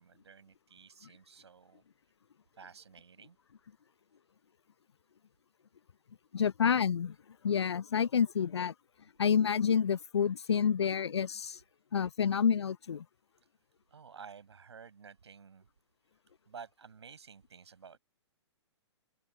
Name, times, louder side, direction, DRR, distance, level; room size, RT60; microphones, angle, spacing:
voice 1, 0.0-1.8 2.6-3.4 13.9-15.7 16.5-18.0, right 6 dB, 65° right, 6.5 m, -52 dB
voice 2, 6.3-7.2 7.4-8.7 9.2-11.6 11.9-13.0, left 7 dB, 65° left, 0.8 m, -28 dB
open air
figure-of-eight pair, 115°, 15 cm